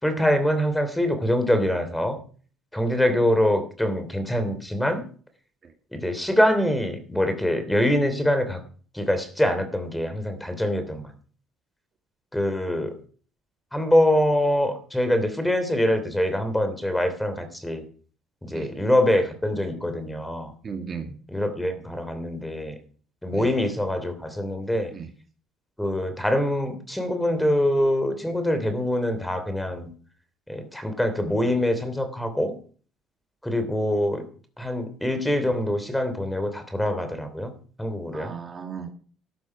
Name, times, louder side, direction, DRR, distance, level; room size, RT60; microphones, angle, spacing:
voice 1, 0.0-2.2 2.7-5.0 5.9-8.6 8.9-11.0 12.3-12.9 13.7-17.8 18.4-20.5 21.3-22.8 23.2-24.9 25.8-29.9 30.5-32.5 33.4-34.2 34.6-37.5 37.8-38.3, left 1 dB, 5° left, 9 dB, 3.0 m, -24 dB
voice 2, 20.6-21.1 23.3-23.6 24.9-25.1 38.1-38.9, right 6 dB, 30° right, 5 dB, 2.0 m, -36 dB
14.0 x 12.5 x 6.1 m, 0.42 s
cardioid pair, 135°, 0 cm